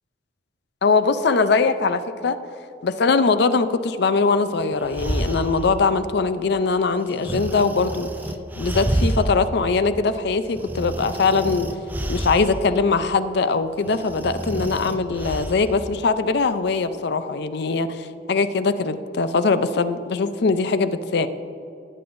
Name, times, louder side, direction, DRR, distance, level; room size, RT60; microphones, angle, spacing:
voice 1, 0.8-2.4 2.8-8.1 8.5-11.7 12.1-21.3, left 4 dB, 60° left, 12 dB, 0.5 m, -21 dB
sound 1, 4.6-5.8 7.2-9.4 9.8-9.9 10.5-12.7 13.8-15.7, right 1 dB, 10° right, 0.4 m, -28 dB
18.5 x 8.6 x 2.6 m, 2.8 s
head